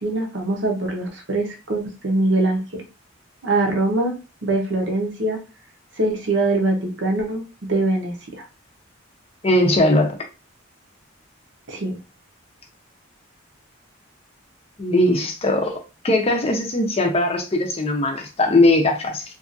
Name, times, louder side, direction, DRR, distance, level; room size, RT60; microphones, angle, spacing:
voice 1, 0.0-2.8 3.4-4.1 4.4-5.4 6.0-8.1 11.7-12.0, right 2 dB, 60° right, 0.8 m, -23 dB
voice 2, 9.4-10.2 14.8-15.8 16.0-19.2, left 1 dB, 30° left, 0.5 m, -19 dB
2.7 x 2.4 x 2.5 m
head